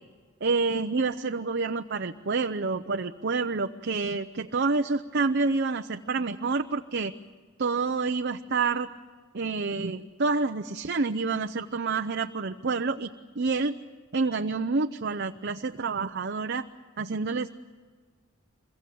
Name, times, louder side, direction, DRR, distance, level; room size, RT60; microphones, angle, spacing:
voice 1, 0.4-7.1 7.6-8.9 9.3-13.1 13.4-13.7 14.1-16.6 17.0-17.5, right 4 dB, 55° right, 7 dB, 0.7 m, -28 dB
26.5 x 23.0 x 7.9 m, 1.5 s
head